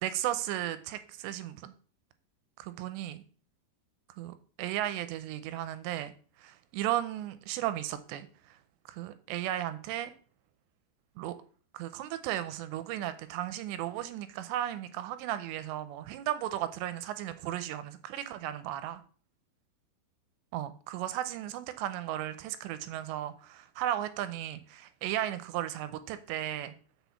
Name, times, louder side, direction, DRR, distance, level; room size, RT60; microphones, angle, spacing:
voice 1, 0.0-1.7 2.6-3.2 4.2-6.1 6.4-8.6 8.9-10.1 11.2-11.3 11.7-19.0 20.5-26.7, right 12 dB, 80° right, 11 dB, 2.8 m, -35 dB
6.2 x 6.2 x 6.9 m, 0.42 s
omnidirectional pair, 5.2 m